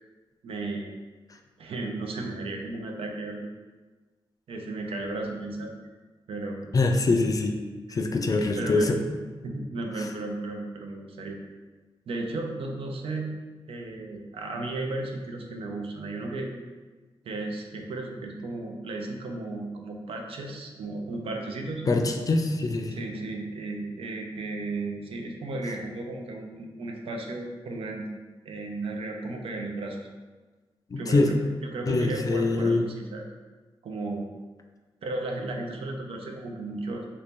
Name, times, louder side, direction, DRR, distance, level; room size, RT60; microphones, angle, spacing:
voice 1, 0.4-0.9 1.6-3.5 4.5-5.7 6.3-6.6 7.7-8.0 8.5-8.9 9.4-11.4 12.1-13.3 13.7-16.5 17.2-21.8 22.9-28.1 28.4-30.0 31.0-33.3 33.8-34.3 35.0-37.1, right 2 dB, 80° right, 2 dB, 0.5 m, -34 dB
voice 2, 6.7-7.6 7.9-9.0 21.9-23.0 30.9-31.3 31.9-32.9, left 3 dB, 40° left, 4 dB, 0.4 m, -24 dB
2.8 x 2.6 x 3.5 m, 1.3 s
cardioid pair, 80°, 10 cm